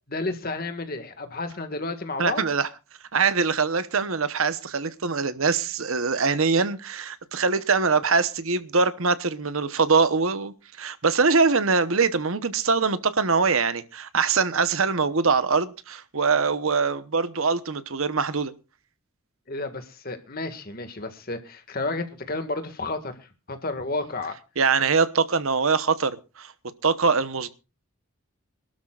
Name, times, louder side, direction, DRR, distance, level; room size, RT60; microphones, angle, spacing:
voice 1, 0.1-2.4 19.5-24.4, left 2 dB, 45° left, 1.9 m, -31 dB
voice 2, 2.2-2.7 3.1-18.5 24.6-26.1 26.4-26.5 26.8-27.5, right 4 dB, 70° right, 1.0 m, -23 dB
26.5 x 12.5 x 2.4 m
head